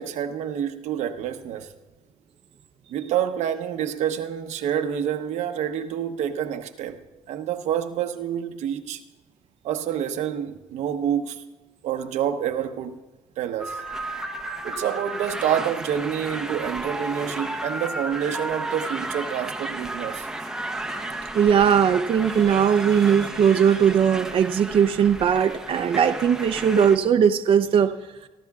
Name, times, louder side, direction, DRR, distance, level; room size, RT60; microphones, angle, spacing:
voice 1, 0.0-1.7 2.9-7.0 7.3-9.0 9.6-11.4 11.8-13.0 13.4-13.8 14.6-20.3, right 9 dB, 80° right, 0.9 m, -28 dB
sound 1, 13.6-27.0, right 2 dB, 5° right, 0.8 m, -33 dB
voice 2, 21.3-27.9, right 8 dB, 50° right, 0.6 m, -19 dB
25.0 x 12.0 x 2.4 m
cardioid pair, 115°, 12 cm